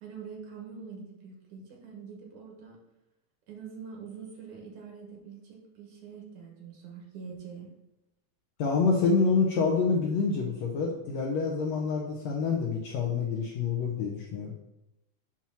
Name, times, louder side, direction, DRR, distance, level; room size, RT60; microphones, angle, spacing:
voice 1, 0.0-2.8 3.5-7.7, right 6 dB, 70° right, 0 dB, 2.5 m, -44 dB
voice 2, 8.6-14.5, left 4 dB, 75° left, -1 dB, 1.7 m, -27 dB
7.3 x 3.0 x 5.6 m, 0.91 s
omnidirectional pair, 3.8 m